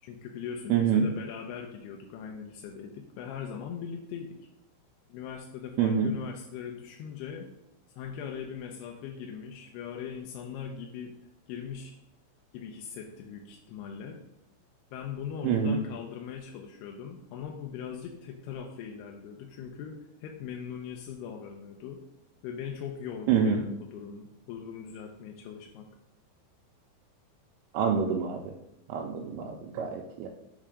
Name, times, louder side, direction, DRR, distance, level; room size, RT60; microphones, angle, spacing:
voice 1, 0.0-4.4 5.1-7.5 8.0-11.1 11.5-11.9 12.5-14.2 14.9-22.0 22.4-25.9, left 7 dB, 80° left, 1 dB, 2.4 m, -40 dB
voice 2, 0.7-1.1 5.8-6.1 15.4-15.8 23.3-23.6 27.7-28.5 28.9-30.3, right 6 dB, 85° right, 0 dB, 2.9 m, -26 dB
7.7 x 3.6 x 4.9 m, 0.84 s
omnidirectional pair, 5.1 m